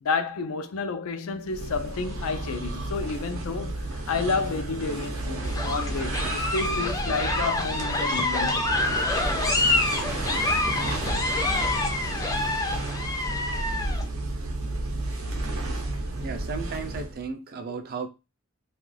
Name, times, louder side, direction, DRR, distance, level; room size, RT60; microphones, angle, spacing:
voice 1, 0.0-8.7, left 4 dB, 85° left, 0.4 m, -30 dB
sound 1, 1.4-17.3, right 2 dB, 85° right, 0.6 m, -32 dB
sound 2, 5.4-14.0, left 2 dB, 15° left, 0.4 m, -27 dB
sound 3, 8.8-14.1, left 1 dB, 55° left, 0.7 m, -42 dB
voice 2, 16.2-18.1, right 5 dB, 45° right, 0.4 m, -34 dB
2.4 x 2.2 x 3.1 m
head